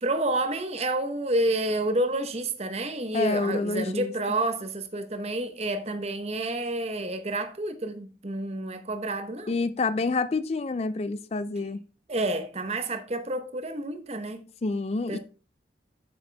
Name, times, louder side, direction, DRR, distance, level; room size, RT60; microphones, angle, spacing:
voice 1, 0.0-9.6 12.1-14.5 15.1-15.2, right 1 dB, 35° right, 0.9 m, -29 dB
voice 2, 3.1-4.1 9.5-11.8 14.6-15.2, left 3 dB, 35° left, 0.4 m, -28 dB
8.0 x 6.9 x 3.3 m
head